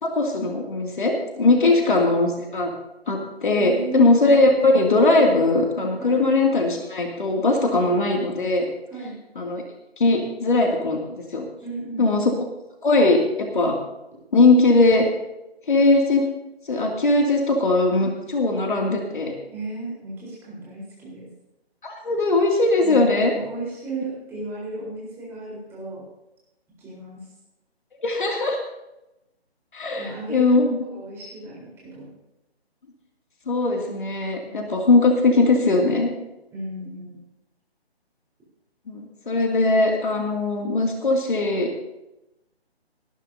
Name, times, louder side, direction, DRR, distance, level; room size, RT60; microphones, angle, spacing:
voice 1, 0.0-2.7 3.1-8.7 9.4-9.6 10.0-11.0 11.3-11.4 12.0-12.3 12.8-13.2 13.5-13.7 14.3-15.0 15.7-16.2 16.7-19.4 21.8-23.3 28.0-28.6 29.7-30.8 33.5-36.1 38.9-41.7, left 2 dB, 50° left, 1 dB, 2.6 m, -20 dB
voice 2, 3.5-4.1 6.0-6.2 8.9-9.2 11.6-12.1 19.5-21.3 22.8-26.1 26.8-27.2 29.9-32.1 34.4-34.6 36.5-37.2, right 3 dB, 5° right, -6 dB, 4.1 m, -34 dB
19.0 x 14.5 x 2.8 m, 0.93 s
figure-of-eight pair, 150°, 32 cm